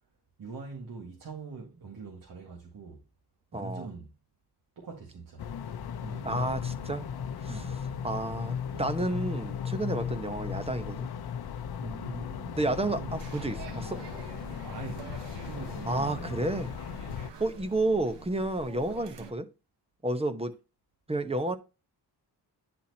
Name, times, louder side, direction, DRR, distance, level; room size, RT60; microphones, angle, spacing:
voice 1, 0.4-3.0 3.5-4.1 4.8-5.5 6.0-6.9 7.5-7.8 11.8-12.6 12.9-13.6 14.6-16.5, right 4 dB, 55° right, 1.9 m, -43 dB
voice 2, 3.5-3.9 6.2-7.1 7.4-7.6 8.0-11.1 12.6-14.0 15.9-16.7 17.4-19.5 20.0-20.5 21.1-21.6, right 2 dB, 15° right, 0.9 m, -31 dB
sound 1, 5.4-17.3, left 8 dB, 65° left, 0.8 m, -37 dB
sound 2, 13.1-19.3, right 4 dB, 85° right, 1.4 m, -46 dB
10.0 x 4.3 x 2.8 m
wide cardioid pair, 115°, 42 cm